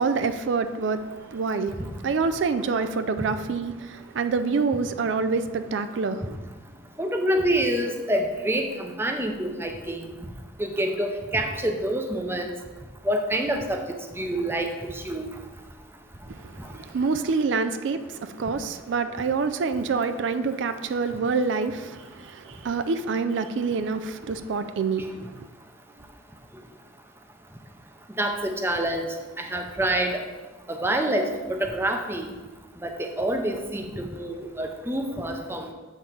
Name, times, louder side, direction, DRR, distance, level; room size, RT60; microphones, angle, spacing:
voice 1, 0.0-6.4 16.3-25.5, right 4 dB, 75° right, 0.4 m, -27 dB
voice 2, 7.0-10.1 10.6-12.5 13.0-13.8 14.2-15.3 16.6-16.7 28.2-29.1 29.4-30.2 30.7-32.4 32.8-35.7, right 1 dB, 10° right, 0.6 m, -27 dB
7.3 x 3.8 x 5.9 m
head